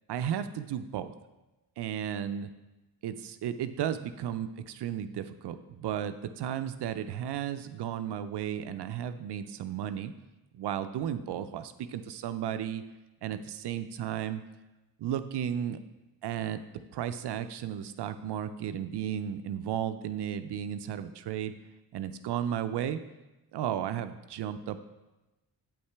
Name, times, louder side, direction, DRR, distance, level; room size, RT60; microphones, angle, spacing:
voice 1, 0.1-1.1 1.8-2.5 3.0-10.1 10.5-12.8 13.2-14.4 15.0-15.8 16.2-16.6 16.9-21.5 21.9-23.0 23.5-24.8, right 9 dB, 70° right, 11 dB, 0.5 m, -34 dB
8.6 x 5.5 x 3.4 m, 1.0 s
cardioid pair, 65°, 43 cm